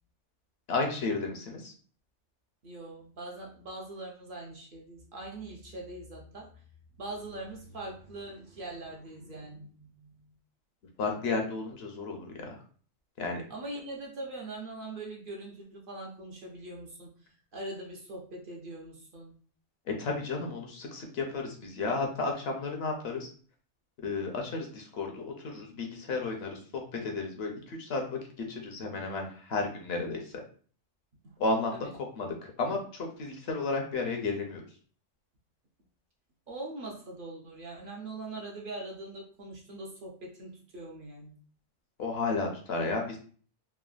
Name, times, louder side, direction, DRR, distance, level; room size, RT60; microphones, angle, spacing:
voice 1, 0.7-1.7 11.0-12.5 13.2-13.4 19.9-23.3 24.0-28.2 28.5-30.2 31.4-31.9 32.2-34.6 42.0-43.2, left 3 dB, 65° left, 2 dB, 0.8 m, -33 dB
voice 2, 2.6-6.5 7.0-10.3 13.5-17.1 17.5-19.3 31.2-31.3 31.7-32.0 36.5-41.4, right 2 dB, 55° right, -2 dB, 0.7 m, -42 dB
3.2 x 2.1 x 2.3 m, 0.43 s
omnidirectional pair, 1.2 m